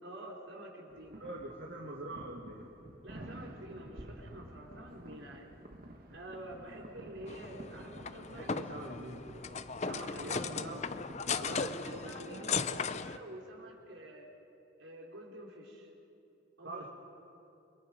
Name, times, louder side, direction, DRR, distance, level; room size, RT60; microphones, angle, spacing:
voice 1, 0.0-1.2 3.0-5.5 6.1-8.8 9.8-10.4 11.4-14.3 14.8-15.9 16.6-16.9, right 1 dB, 85° right, -2 dB, 4.3 m, -48 dB
sound 1, 0.9-11.7, right 1 dB, 50° right, 1.7 m, -51 dB
voice 2, 1.2-2.7 8.3-9.2 9.8-11.0 11.4-12.6 16.6-16.9, right 1 dB, 70° right, -2 dB, 2.1 m, -44 dB
sound 2, 7.3-13.2, left 5 dB, 35° left, 0.5 m, -37 dB
29.0 x 23.5 x 5.3 m, 2.9 s
head